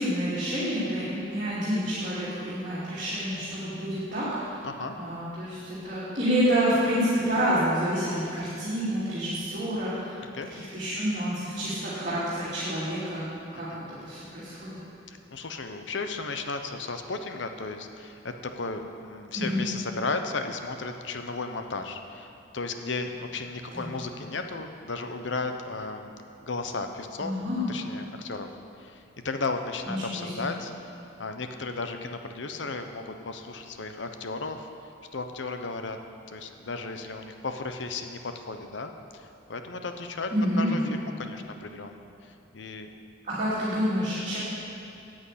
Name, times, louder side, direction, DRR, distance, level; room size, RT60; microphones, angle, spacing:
voice 1, 0.0-4.6 5.0-10.1 10.5-14.8 19.3-19.6 23.7-23.9 27.2-27.7 29.9-30.5 40.3-40.8 43.2-44.4, equal, 40° right, -11 dB, 2.9 m, -28 dB
voice 2, 4.6-4.9 10.2-10.5 13.5-13.8 15.1-27.3 27.7-28.5 28.8-30.7 31.2-34.7 35.1-36.0 36.3-40.3 40.6-42.9 44.2-44.3, left 3 dB, 70° left, 6 dB, 0.8 m, -35 dB
9.8 x 7.9 x 8.6 m, 2.7 s
head